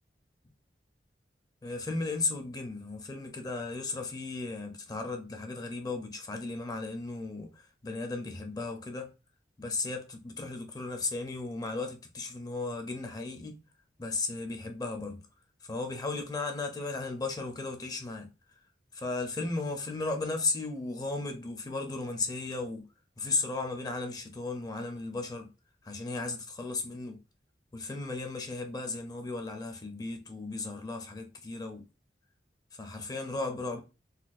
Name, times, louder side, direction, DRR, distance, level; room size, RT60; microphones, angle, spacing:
voice 1, 1.6-9.1 9.6-13.6 14.0-15.2 15.7-18.3 18.9-22.9 23.2-25.5 25.8-27.2 27.7-31.8 32.7-33.8, left 3 dB, 20° left, 0.5 m, -35 dB
4.0 x 2.3 x 2.4 m
head